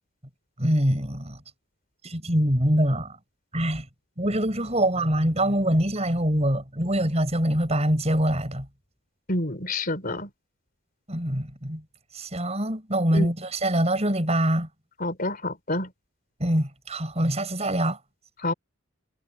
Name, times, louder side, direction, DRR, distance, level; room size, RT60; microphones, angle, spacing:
voice 1, 0.6-1.4 2.0-3.1 3.5-3.9 4.2-8.7 11.1-11.8 12.1-14.7 16.4-18.0, right 1 dB, 30° right, 7.7 m, -24 dB
voice 2, 9.3-10.3 13.1-13.3 15.0-15.9 18.4-18.5, left 2 dB, 40° left, 4.1 m, -28 dB
head